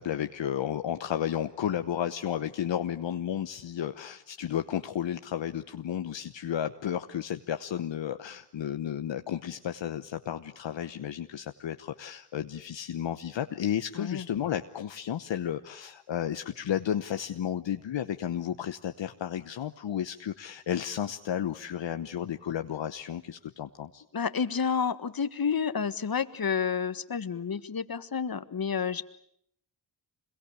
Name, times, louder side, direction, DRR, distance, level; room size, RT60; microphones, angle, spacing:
voice 1, 0.0-24.0, left 10 dB, 65° left, 8 dB, 1.1 m, -33 dB
voice 2, 13.9-14.3 24.1-29.0, left 6 dB, 45° left, 12 dB, 1.7 m, -30 dB
26.0 x 22.5 x 8.5 m, 0.71 s
supercardioid pair, 45°, 47 cm